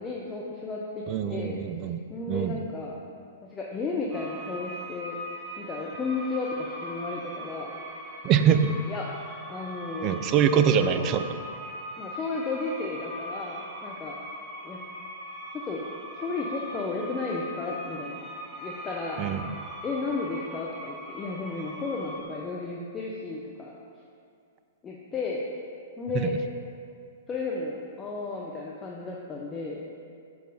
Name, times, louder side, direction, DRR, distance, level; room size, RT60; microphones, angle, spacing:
voice 1, 0.0-1.6 2.1-3.0 3.5-5.2 5.6-7.7 8.9-9.1 9.5-10.2 10.8-11.1 12.0-14.2 14.6-14.8 15.5-15.8 16.1-18.2 18.6-19.2 19.8-23.7 24.8-25.4 26.0-26.3 27.3-29.8, left 3 dB, 20° left, -3 dB, 0.6 m, -33 dB
voice 2, 1.1-2.0 2.3-2.6 8.2-8.8 10.0-11.3 19.2-19.4 26.1-26.3, right 8 dB, 35° right, 9 dB, 0.4 m, -23 dB
sound 1, 4.1-22.2, equal, 10° right, 1.0 m, -40 dB
6.2 x 4.7 x 5.0 m, 2.4 s
figure-of-eight pair, 110°, 0 cm